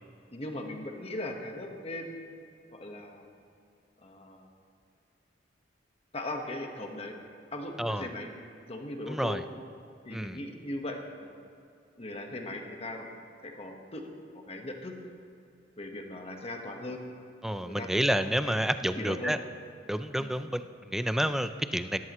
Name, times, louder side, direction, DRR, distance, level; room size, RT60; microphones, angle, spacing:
voice 1, 0.3-2.3 2.7-3.3 4.0-4.5 6.1-7.2 7.5-8.3 8.7-9.4 10.0-11.5 12.0-13.1 13.4-14.9 15.8-17.0 17.6-18.5 19.0-19.4 20.2-20.4, left 1 dB, 35° left, 3 dB, 1.3 m, -39 dB
voice 2, 9.1-9.4 10.1-10.4 17.4-19.4 19.9-22.0, equal, ahead, 10 dB, 0.4 m, -29 dB
18.5 x 14.0 x 3.1 m, 2.5 s
head